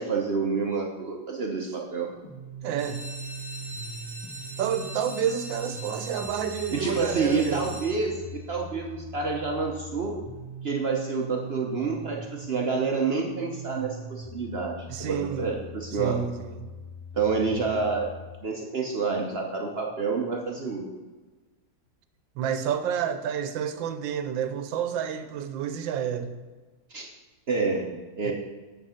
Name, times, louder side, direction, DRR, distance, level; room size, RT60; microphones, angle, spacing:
voice 1, 0.0-2.1 6.7-8.1 8.5-10.1 10.6-16.1 17.1-18.1 18.4-20.9 26.9-27.1 27.5-27.9 28.2-28.3, right 4 dB, 50° right, 1 dB, 0.8 m, -28 dB
sound 1, 2.2-18.2, right 1 dB, 25° left, 1.2 m, -41 dB
voice 2, 2.6-3.0 4.6-7.7 14.9-15.5 15.9-16.7 22.4-26.3 28.2-28.3, right 8 dB, 85° right, 10 dB, 1.4 m, -29 dB
sound 2, 2.8-8.4 9.0-9.5 9.9-10.0 10.2-10.3 10.8-10.9, equal, 5° left, 1.4 m, -41 dB
8.0 x 6.3 x 5.6 m, 1.3 s
omnidirectional pair, 2.0 m